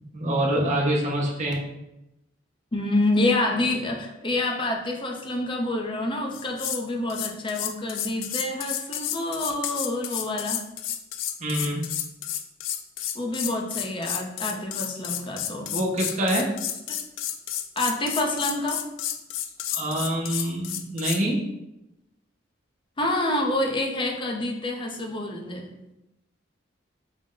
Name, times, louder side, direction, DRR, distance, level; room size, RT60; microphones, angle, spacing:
voice 1, 0.1-1.5 11.4-11.9 15.7-16.5 19.7-21.5, right 1 dB, 40° right, -2 dB, 0.7 m, -25 dB
voice 2, 2.7-10.6 13.1-15.7 16.9-17.0 17.8-18.8 23.0-25.7, left 1 dB, 25° left, 2 dB, 0.5 m, -27 dB
sound 1, 6.3-6.8 7.1-21.2, left 10 dB, 75° left, 0.3 m, -31 dB
4.9 x 2.1 x 3.7 m, 0.90 s
head